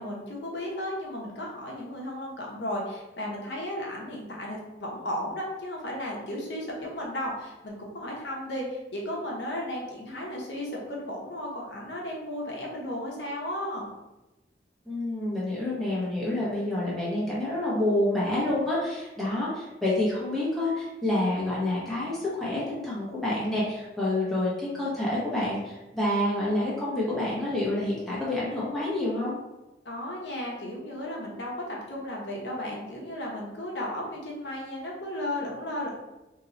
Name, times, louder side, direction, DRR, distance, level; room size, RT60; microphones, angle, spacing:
voice 1, 0.0-13.9 29.8-35.9, left 1 dB, 80° left, -2 dB, 0.9 m, -34 dB
voice 2, 14.9-29.4, left 1 dB, ahead, -8 dB, 1.1 m, -28 dB
3.0 x 2.8 x 3.9 m, 1.0 s
head